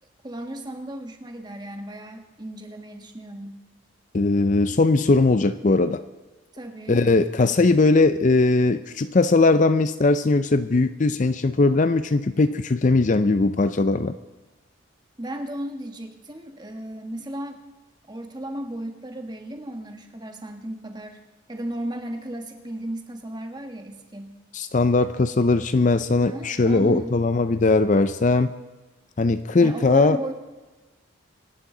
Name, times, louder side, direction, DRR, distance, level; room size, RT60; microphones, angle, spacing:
voice 1, 0.2-3.6 6.5-7.1 15.2-17.6 18.1-21.2 21.5-24.4 26.2-27.2 29.6-30.3, right 1 dB, 20° right, 5 dB, 1.4 m, -35 dB
voice 2, 4.1-6.0 6.9-14.1 24.5-28.5 29.2-30.2, left 3 dB, 35° left, 12 dB, 0.4 m, -19 dB
26.0 x 12.0 x 3.9 m, 1.2 s
head